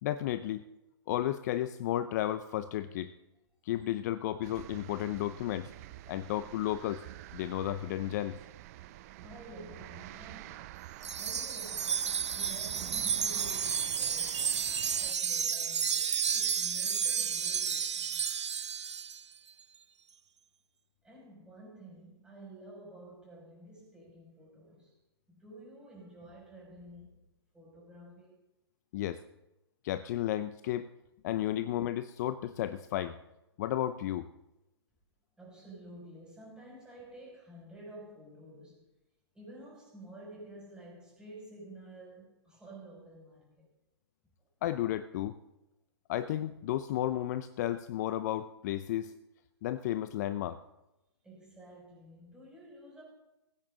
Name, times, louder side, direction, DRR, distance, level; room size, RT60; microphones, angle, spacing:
voice 1, 0.0-0.6 1.1-3.1 3.6-5.7 6.1-7.0 7.3-8.4 28.9-29.2 29.8-30.9 31.2-33.2 33.6-34.3 44.6-45.4 46.1-49.1 49.6-50.6, left 13 dB, 40° left, 0.6 m, -33 dB
sound 1, 4.4-15.1, right 15 dB, 35° right, 0.6 m, -48 dB
voice 2, 9.2-10.7 11.1-14.5 14.9-18.3 21.0-25.0 25.3-27.1 27.5-28.4 35.4-38.8 39.3-43.6 51.2-53.0, right 1 dB, 5° right, 6.4 m, -51 dB
Wind chime, 11.0-19.2, right 7 dB, 85° right, 0.4 m, -32 dB
20.5 x 9.5 x 3.9 m
hypercardioid pair, 135°, 14 cm